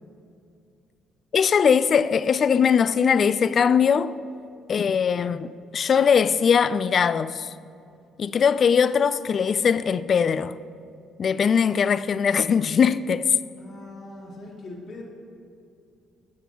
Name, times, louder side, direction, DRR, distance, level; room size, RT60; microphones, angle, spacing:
voice 1, 1.3-4.1 4.7-7.5 8.2-10.6 11.2-13.3, left 7 dB, 50° left, 0.4 m, -21 dB
voice 2, 13.6-15.0, left 2 dB, 70° left, 2.9 m, -41 dB
20.0 x 7.6 x 3.0 m
supercardioid pair, 65°, 0 cm